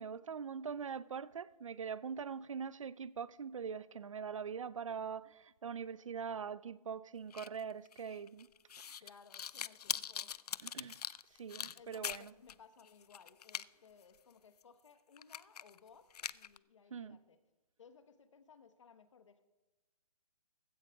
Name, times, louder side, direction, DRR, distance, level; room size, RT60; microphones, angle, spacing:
voice 1, 0.0-8.5 8.8-9.0 10.6-11.0 11.3-12.3 16.9-17.2, right 6 dB, 55° right, 0.5 m, -43 dB
sound 1, 7.3-12.5 12.8-13.6 14.0-14.1 14.6-14.7 15.2-15.8 16.1-16.6, left 8 dB, 75° left, 0.4 m, -42 dB
voice 2, 9.0-10.3 11.7-17.4 17.8-19.4, left 6 dB, 50° left, 1.2 m, -61 dB
15.5 x 15.5 x 3.5 m
hypercardioid pair, 175°, 20 cm